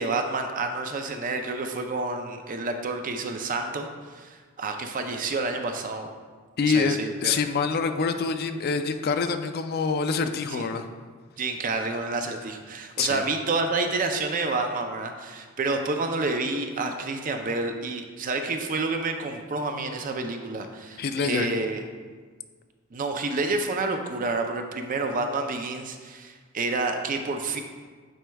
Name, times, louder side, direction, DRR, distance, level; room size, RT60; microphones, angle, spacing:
voice 1, 0.0-6.1 6.6-7.3 10.5-10.7 11.4-21.8 22.9-27.6, right 3 dB, 40° right, 5 dB, 0.5 m, -29 dB
voice 2, 6.6-10.9 13.0-13.2 21.0-21.5, left 5 dB, 45° left, 8 dB, 0.4 m, -26 dB
9.1 x 4.5 x 2.3 m, 1.5 s
head